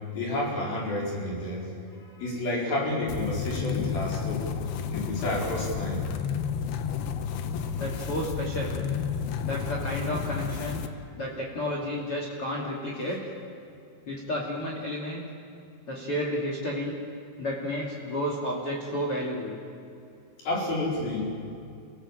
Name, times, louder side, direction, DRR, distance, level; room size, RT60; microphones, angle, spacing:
voice 1, 0.1-1.7 2.0-4.5 4.9-6.0 20.4-21.3, left 1 dB, 65° left, -3 dB, 6.6 m, -30 dB
sound 1, 3.1-10.9, left 7 dB, 85° left, 3.1 m, -31 dB
voice 2, 7.7-8.8 9.4-10.8 11.1-13.3 14.0-15.2 15.9-17.0 17.4-19.6, equal, 35° left, -3 dB, 3.3 m, -31 dB
30.0 x 17.0 x 7.5 m, 2.5 s
omnidirectional pair, 4.5 m